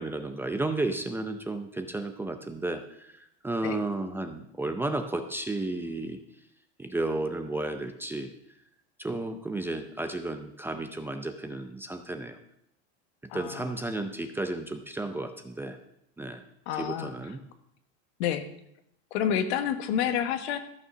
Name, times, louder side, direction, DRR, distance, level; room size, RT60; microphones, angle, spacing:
voice 1, 0.0-3.1 3.4-6.2 6.8-8.3 9.0-12.4 13.3-15.8 16.2-16.4 16.8-17.4, right 2 dB, 5° right, 6 dB, 0.5 m, -33 dB
voice 2, 13.3-13.8 16.7-17.1 18.2-18.5 19.1-20.6, left 9 dB, 70° left, 9 dB, 1.4 m, -29 dB
14.0 x 6.3 x 6.3 m, 0.77 s
supercardioid pair, 150°, 33 cm